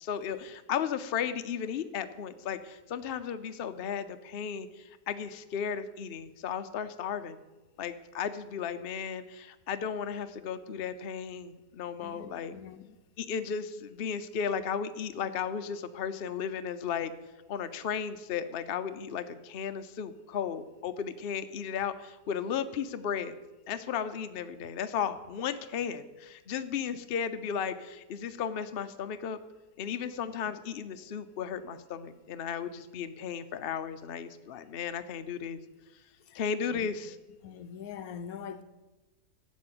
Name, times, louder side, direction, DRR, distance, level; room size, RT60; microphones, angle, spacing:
voice 1, 0.0-7.4 7.8-12.5 13.2-17.1 17.5-23.3 23.7-29.4 29.8-35.6 36.3-37.1, left 7 dB, 55° left, 0.7 m, -35 dB
voice 2, 12.0-13.0 30.5-30.6 36.2-36.4 36.7-36.9 37.4-38.6, left 7 dB, 70° left, 1.1 m, -43 dB
12.5 x 7.2 x 7.8 m
omnidirectional pair, 1.7 m